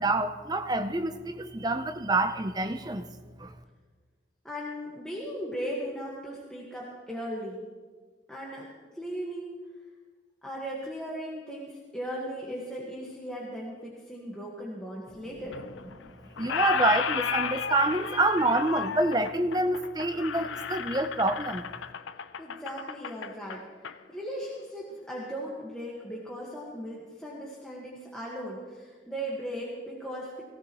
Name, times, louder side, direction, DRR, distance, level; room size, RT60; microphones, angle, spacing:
voice 1, 0.0-3.0 3.4-3.5 16.0-16.1 16.4-21.6, right 2 dB, 20° right, 8 dB, 0.6 m, -27 dB
voice 2, 4.4-7.6 8.3-8.7 8.9-9.6 10.4-15.6 22.4-30.4, equal, 5° left, -6 dB, 1.5 m, -37 dB
Squeak, 15.5-16.1 16.4-24.0, left 7 dB, 85° left, 0.5 m, -34 dB
18.5 x 15.5 x 3.1 m, 1.5 s
head